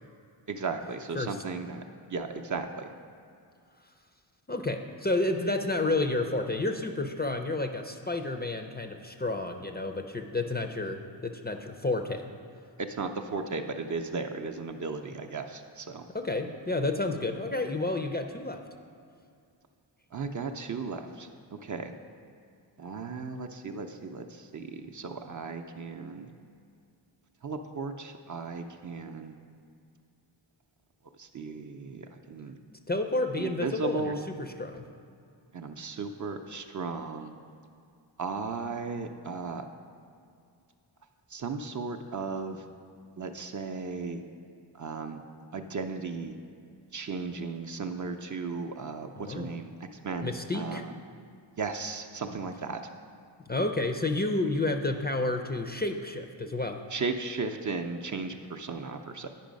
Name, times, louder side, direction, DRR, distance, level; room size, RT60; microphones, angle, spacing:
voice 1, 0.5-1.8 2.1-2.9 12.8-16.1 20.1-21.9 22.8-26.3 27.4-29.3 31.2-32.5 33.4-34.2 35.5-37.4 38.2-39.7 41.3-42.6 43.2-44.2 44.7-45.2 45.5-46.4 46.9-51.0 51.6-52.8 56.9-59.3, right 4 dB, 45° right, 6 dB, 0.5 m, -35 dB
voice 2, 4.5-12.2 16.1-18.6 32.9-34.1 34.4-34.9 49.2-49.5 50.2-50.8 53.5-56.8, left 2 dB, 25° left, 4 dB, 0.4 m, -30 dB
9.1 x 5.4 x 5.1 m, 2.4 s
wide cardioid pair, 105°, 45 cm